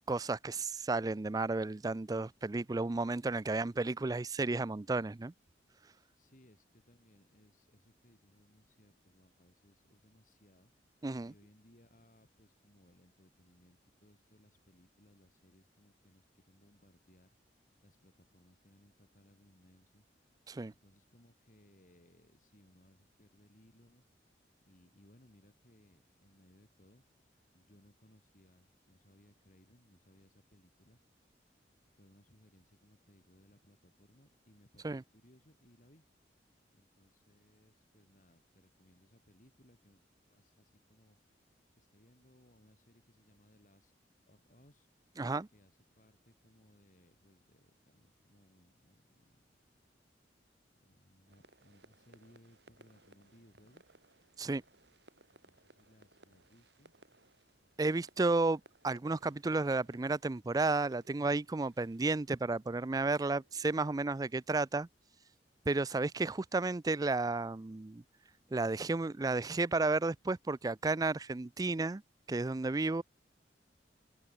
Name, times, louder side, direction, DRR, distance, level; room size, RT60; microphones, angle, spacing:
voice 1, 0.1-5.3 11.0-11.3 20.5-20.7 34.8-35.0 45.2-45.5 54.4-54.6 57.8-64.9 65.7-68.0 68.5-72.0 72.3-73.0, right 3 dB, 20° right, 0.4 m, -32 dB
voice 2, 6.2-20.3 20.7-24.0 24.6-27.0 27.5-31.2 31.9-36.0 36.7-40.0 40.3-44.0 44.3-45.2 45.5-49.4 50.8-53.8 55.4-56.9, left 1 dB, 45° left, 4.2 m, -65 dB
sound 1, 51.3-64.6, right 2 dB, 70° right, 7.3 m, -65 dB
open air
head